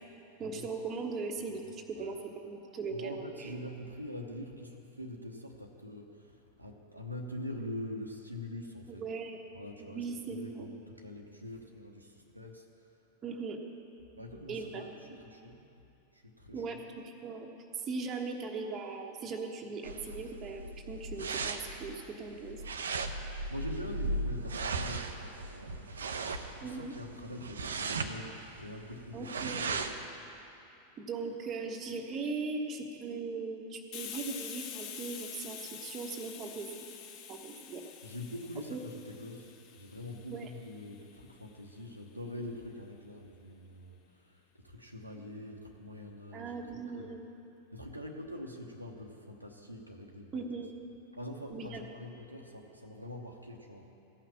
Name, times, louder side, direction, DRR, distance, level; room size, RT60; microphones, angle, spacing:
voice 1, 0.4-3.5 9.0-9.4 9.8-10.7 13.2-13.6 14.5-15.2 16.5-22.6 26.6-26.9 29.1-29.9 31.0-36.8 37.3-37.8 38.7-38.8 40.3-40.5 46.3-47.2 50.3-50.7 51.5-51.9, right 4 dB, 30° right, 2 dB, 1.2 m, -39 dB
voice 2, 2.9-9.0 9.5-12.7 14.1-14.9 15.2-15.8 16.1-16.6 23.5-29.8 38.0-46.5 47.0-47.2 47.7-50.5 51.1-53.9, left 1 dB, 85° right, 1 dB, 1.0 m, -44 dB
sound 1, 19.8-30.0, right 3 dB, 70° right, 0.6 m, -37 dB
Hiss, 33.9-41.3, left 8 dB, 40° left, 0.9 m, -46 dB
15.0 x 5.8 x 8.5 m, 2.8 s
figure-of-eight pair, 90°, 0 cm